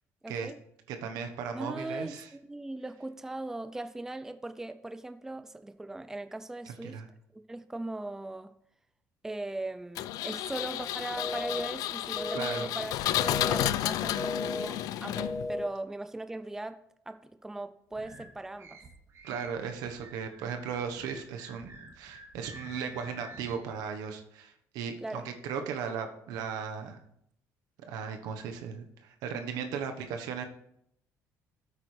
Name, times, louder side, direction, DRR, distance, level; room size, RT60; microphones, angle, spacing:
voice 1, 0.2-0.6 1.5-7.0 7.5-8.6 9.2-16.8 17.1-18.8 25.0-25.3, right 2 dB, 5° right, 10 dB, 0.6 m, -39 dB
voice 2, 0.9-2.3 6.8-7.1 12.3-12.7 19.2-27.0 27.9-30.4, right 6 dB, 85° right, 6 dB, 1.2 m, -37 dB
Engine, 10.0-15.6, left 13 dB, 75° left, 0.4 m, -32 dB
sound 1, 11.2-11.7 12.2-12.7 13.2-13.7 14.2-14.7 15.2-15.7, left 2 dB, 15° left, 1.0 m, -35 dB
sound 2, 17.9-23.6, right 1 dB, 50° right, 2.6 m, -49 dB
13.0 x 8.4 x 3.4 m, 0.74 s
cardioid pair, 105°, 6 cm